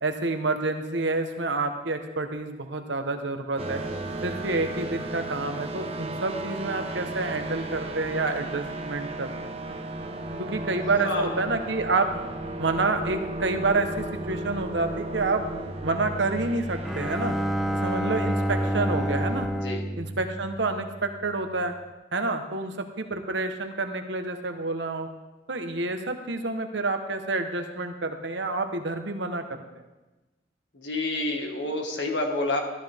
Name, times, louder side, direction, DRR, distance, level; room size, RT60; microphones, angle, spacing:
voice 1, 0.0-3.8 4.2-9.5 10.4-12.2 12.6-15.4 15.8-17.4 17.8-19.5 20.0-21.7 22.1-25.1 25.5-29.4, right 3 dB, 85° right, 6 dB, 1.2 m, -28 dB
sound 1, 3.6-19.5, right 2 dB, 35° right, 1.0 m, -34 dB
voice 2, 11.0-11.4 19.6-19.8 30.7-32.6, left 2 dB, 80° left, 2 dB, 1.9 m, -28 dB
Bowed string instrument, 16.8-21.2, equal, ahead, 0.6 m, -29 dB
14.0 x 13.0 x 3.6 m, 1.1 s
head